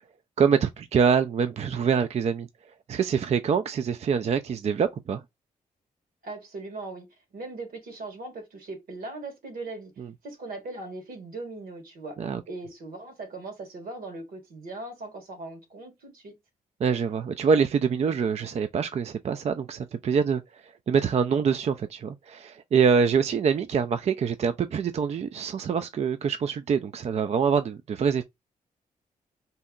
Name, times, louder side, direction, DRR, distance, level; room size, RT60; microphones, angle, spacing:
voice 1, 0.4-2.5 2.9-5.2 10.0-10.1 12.2-12.4 16.8-28.2, right 6 dB, 45° right, 0.4 m, -25 dB
voice 2, 6.2-7.1 7.3-9.9 10.2-12.2 12.5-16.3, right 2 dB, 75° right, 1.4 m, -39 dB
2.7 x 2.1 x 3.6 m
supercardioid pair, 50°, 15 cm